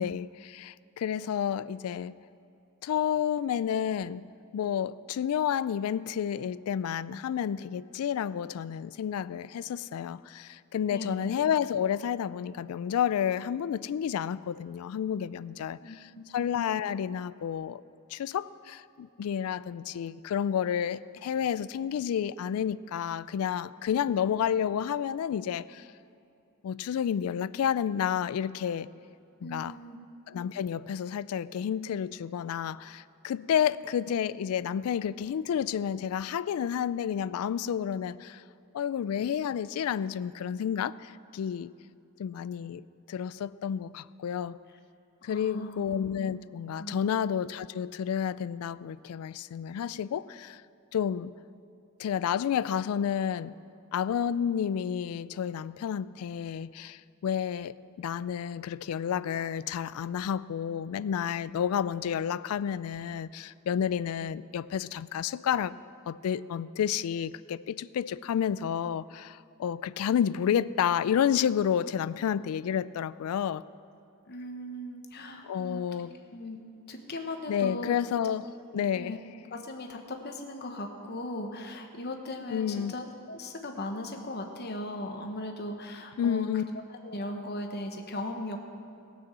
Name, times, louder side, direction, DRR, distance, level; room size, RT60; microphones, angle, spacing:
voice 1, 0.0-2.2 2.8-4.2 4.5-17.8 18.1-25.9 26.6-28.9 29.4-29.8 30.3-38.4 38.7-41.7 42.2-44.6 45.2-50.6 50.9-51.3 52.0-53.5 53.9-65.8 66.1-73.6 75.4-76.2 77.5-79.2 82.5-82.9 86.2-86.6, left 8 dB, 80° left, 19 dB, 0.3 m, -30 dB
voice 2, 10.9-11.3 15.8-16.6 29.4-30.0 45.3-45.8 46.8-47.0 74.2-75.8 76.3-76.6 76.9-78.0 78.7-79.2 79.5-86.5 87.0-88.6, left 1 dB, 45° left, 4 dB, 1.1 m, -38 dB
17.0 x 6.2 x 7.4 m, 2.6 s
head